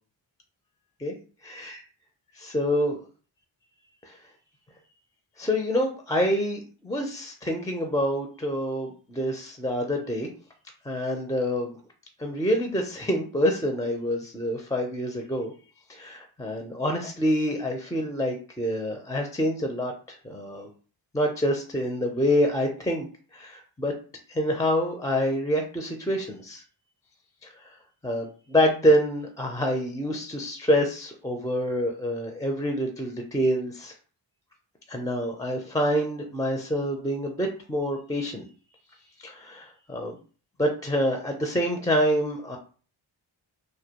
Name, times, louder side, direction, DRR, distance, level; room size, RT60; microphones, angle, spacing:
voice 1, 1.5-1.8 2.4-3.0 4.0-4.2 5.4-10.3 10.8-11.8 12.2-15.5 15.9-20.7 21.1-23.1 23.3-23.9 24.3-26.6 27.4-27.7 28.0-33.9 34.9-38.4 39.2-40.2 40.6-42.6, equal, 10° left, 3 dB, 0.4 m, -27 dB
2.2 x 2.1 x 2.8 m, 0.40 s
cardioid pair, 50°, 48 cm